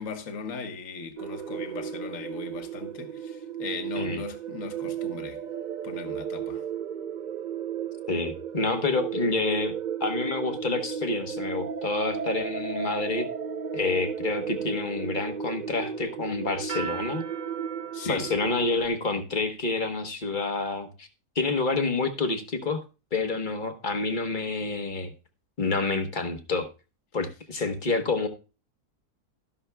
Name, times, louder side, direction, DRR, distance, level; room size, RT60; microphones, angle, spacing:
voice 1, 0.0-5.4 5.8-6.6 17.9-18.3, left 5 dB, 55° left, 1.6 m, -38 dB
sound 1, 1.2-18.9, right 7 dB, 85° right, 0.4 m, -34 dB
voice 2, 8.1-9.7 10.0-13.3 13.7-17.2 18.0-21.1 21.3-22.8 23.1-25.1 25.6-26.7 27.1-28.3, left 3 dB, 35° left, 1.1 m, -28 dB
13.0 x 11.5 x 2.2 m
omnidirectional pair, 1.7 m